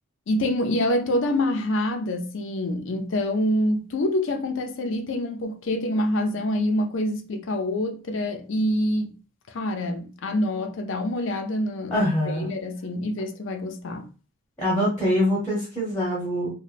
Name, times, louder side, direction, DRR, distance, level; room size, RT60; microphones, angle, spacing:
voice 1, 0.3-9.1 9.5-14.0, left 1 dB, 60° left, 0.4 m, -26 dB
voice 2, 11.9-12.5 14.6-16.5, equal, 15° left, 0.8 m, -24 dB
3.0 x 2.1 x 2.4 m
head